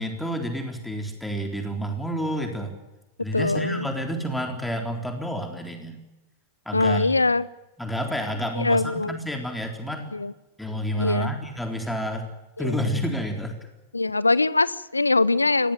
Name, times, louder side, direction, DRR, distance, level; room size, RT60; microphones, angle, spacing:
voice 1, 0.0-2.7 3.2-6.0 6.7-7.2 7.8-10.1 10.6-12.3 12.6-13.6, equal, 5° left, 3.8 m, -29 dB
voice 2, 3.3-3.9 6.7-7.5 8.6-9.2 10.1-10.3 11.0-11.3 12.6-12.8 13.9-15.7, left 3 dB, 80° left, 0.8 m, -22 dB
23.5 x 18.0 x 9.0 m
figure-of-eight pair, 90°, 0 cm